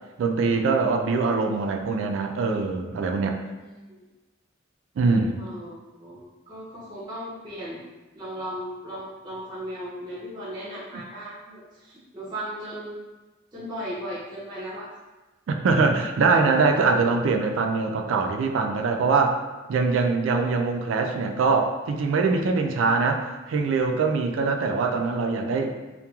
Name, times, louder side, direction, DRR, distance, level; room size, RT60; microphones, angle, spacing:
voice 1, 0.2-3.4 5.0-5.4 15.5-19.4 19.7-25.7, right 4 dB, 85° right, 4 dB, 0.3 m, -23 dB
voice 2, 3.6-4.0 5.4-7.8 8.1-13.0 13.5-15.0, equal, 25° right, -7 dB, 0.5 m, -37 dB
2.9 x 2.2 x 2.3 m, 1.1 s
head